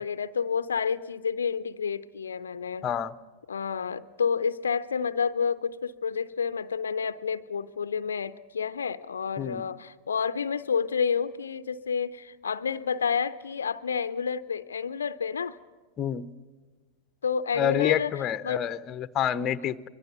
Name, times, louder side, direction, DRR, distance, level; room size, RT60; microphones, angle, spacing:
voice 1, 0.0-2.8 3.5-15.6 17.2-18.1 18.4-18.7, left 6 dB, 70° left, 14 dB, 0.6 m, -29 dB
voice 2, 2.8-3.1 9.4-9.6 16.0-16.2 17.6-19.9, left 9 dB, 30° left, 15 dB, 0.7 m, -28 dB
24.5 x 22.5 x 6.6 m, 1.4 s
figure-of-eight pair, 90°, 0 cm